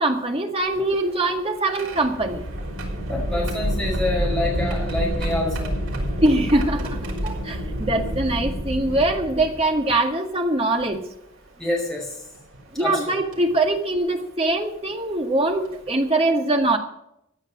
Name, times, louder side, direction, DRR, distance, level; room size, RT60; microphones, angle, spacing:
voice 1, 0.0-2.5 6.2-11.0 12.7-16.8, right 2 dB, 30° right, 3 dB, 1.9 m, -22 dB
sound 1, 0.6-9.9 10.8-10.9 12.3-12.6 13.3-13.5 15.1-15.2 15.6-15.9, equal, 85° right, 5.7 m, -28 dB
voice 2, 3.1-5.7 11.6-12.2 12.8-13.2, left 1 dB, 5° left, -2 dB, 5.4 m, -27 dB
15.5 x 9.6 x 6.2 m, 0.80 s
head